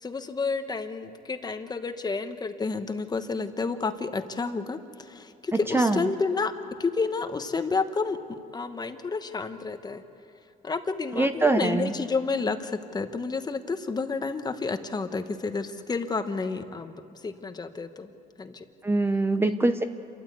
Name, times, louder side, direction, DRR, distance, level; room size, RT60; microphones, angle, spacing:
voice 1, 0.0-6.5 6.8-10.0 10.6-18.1 18.4-18.7 19.4-19.6, left 4 dB, 25° left, 8 dB, 1.2 m, -30 dB
voice 2, 5.5-6.0 11.1-11.9 18.8-19.8, right 2 dB, 15° right, 8 dB, 0.7 m, -23 dB
28.5 x 14.0 x 8.3 m, 2.6 s
cardioid pair, 110°, 17 cm